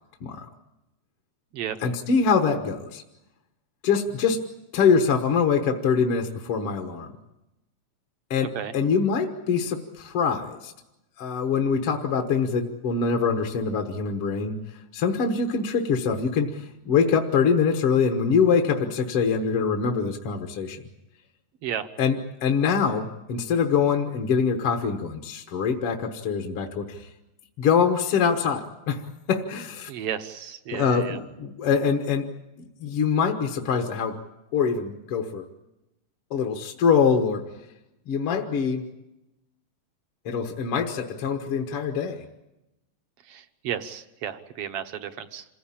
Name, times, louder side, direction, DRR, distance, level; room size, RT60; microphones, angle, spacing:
voice 1, 1.8-3.0 3.8-4.4 4.7-7.1 8.3-10.7 11.2-14.6 14.9-20.8 22.0-22.2 22.4-27.1 27.6-29.0 29.3-29.9 30.7-32.3 32.6-34.2 34.5-35.5 36.3-37.5 38.1-38.9 40.3-42.3, left 6 dB, 55° left, 3 dB, 2.1 m, -24 dB
voice 2, 29.9-31.2 43.3-45.5, right 9 dB, 60° right, 9 dB, 1.9 m, -33 dB
27.0 x 17.0 x 8.7 m, 0.97 s
omnidirectional pair, 3.3 m